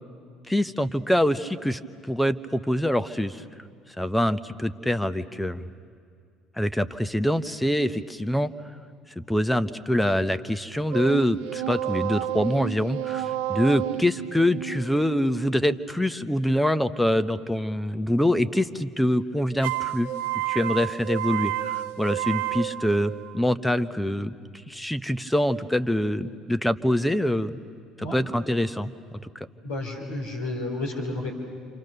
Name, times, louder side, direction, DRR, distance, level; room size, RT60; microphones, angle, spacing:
voice 1, 0.5-1.8 2.1-3.4 4.0-5.7 6.6-8.5 9.2-20.1 20.5-24.3 24.7-27.5 28.0-28.9 29.3-29.5, equal, 5° left, 12 dB, 1.1 m, -25 dB
sound 1, 10.9-16.3 19.6-23.6, right 14 dB, 75° right, 0.8 m, -31 dB
voice 2, 29.6-31.3, left 2 dB, 85° left, -2 dB, 3.5 m, -31 dB
29.5 x 27.0 x 6.8 m, 2.3 s
hypercardioid pair, 60°, 0 cm